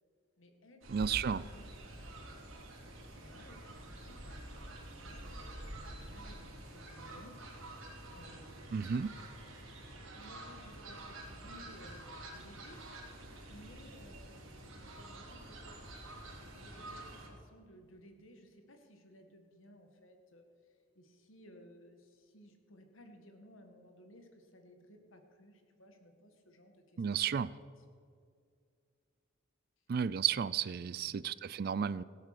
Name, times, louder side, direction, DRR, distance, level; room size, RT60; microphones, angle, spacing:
voice 1, 0.4-1.7 2.8-9.0 10.1-12.8 13.5-15.8 16.5-27.8 30.9-31.3, equal, 75° left, 5 dB, 1.8 m, -58 dB
Fowl, 0.8-17.3, right 1 dB, 80° right, 3.6 m, -48 dB
voice 2, 0.9-1.4 8.7-9.1 27.0-27.5 29.9-32.0, right 7 dB, 45° right, 19 dB, 0.3 m, -33 dB
17.0 x 8.2 x 6.7 m, 2.2 s
head